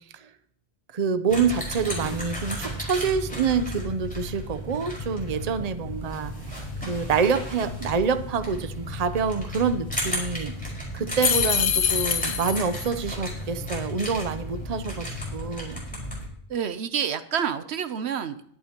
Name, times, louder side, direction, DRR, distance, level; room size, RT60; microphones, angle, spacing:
voice 1, 0.9-6.3 6.9-10.5 10.9-15.8, right 5 dB, 40° right, 11 dB, 0.7 m, -27 dB
sound 1, 1.3-16.3, left 1 dB, 5° left, 4.7 m, -33 dB
sound 2, 11.2-12.9, left 8 dB, 80° left, 1.0 m, -25 dB
voice 2, 16.5-18.4, right 8 dB, 75° right, 12 dB, 1.0 m, -28 dB
21.5 x 8.4 x 2.9 m, 0.68 s
omnidirectional pair, 1.1 m